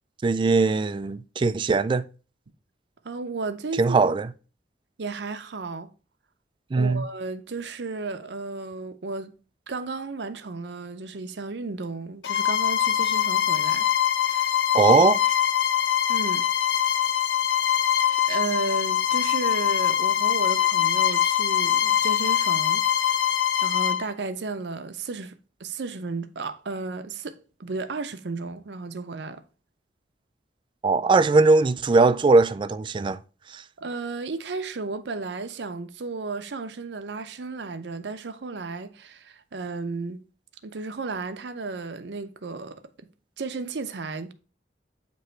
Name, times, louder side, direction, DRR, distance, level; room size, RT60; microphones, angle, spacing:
voice 1, 0.2-2.1 3.8-4.3 6.7-7.1 14.7-15.2 30.8-33.2 33.5-33.6, right 3 dB, 25° right, 0.3 m, -20 dB
voice 2, 3.0-3.9 5.0-5.9 6.8-9.4 9.7-13.9 14.3-14.5 16.1-16.4 18.3-22.8 23.6-29.4 33.8-40.2 40.6-43.1 43.4-44.3, right 3 dB, 70° right, 0.6 m, -33 dB
Bowed string instrument, 12.2-24.0, left 10 dB, 85° left, 0.5 m, -23 dB
7.9 x 3.0 x 4.4 m
head